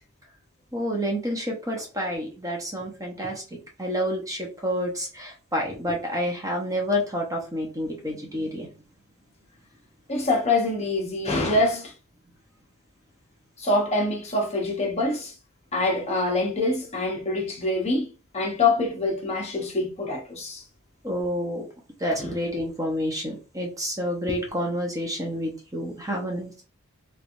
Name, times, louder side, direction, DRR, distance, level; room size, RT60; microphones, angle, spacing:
voice 1, 0.7-3.4 3.8-8.7 21.0-21.6 22.0-26.7, equal, 15° right, 0.8 m, -29 dB
voice 2, 10.1-11.9 13.6-15.3 15.7-20.6 22.2-22.3, left 2 dB, 30° left, 0.9 m, -25 dB
3.3 x 3.3 x 2.5 m
head